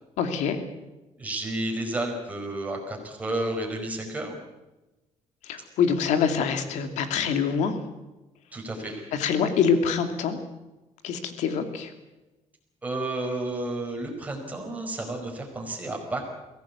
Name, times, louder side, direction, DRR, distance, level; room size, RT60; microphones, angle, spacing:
voice 1, 0.2-0.6 5.4-7.7 9.1-10.4 11.0-11.9, left 6 dB, 85° left, 7 dB, 2.7 m, -25 dB
voice 2, 1.2-4.4 8.5-9.1 12.8-16.3, right 1 dB, 10° right, 1 dB, 5.0 m, -31 dB
23.0 x 17.0 x 8.3 m, 1.1 s
cardioid pair, 160°, 12 cm